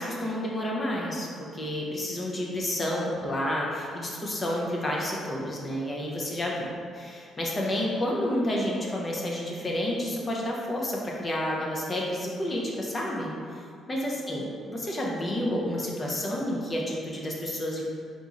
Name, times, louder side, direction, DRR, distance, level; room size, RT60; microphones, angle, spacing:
voice 1, 0.0-13.3 13.9-17.8, left 1 dB, 30° left, -3 dB, 0.6 m, -30 dB
3.7 x 3.0 x 2.4 m, 2.3 s
cardioid pair, 90°, 0 cm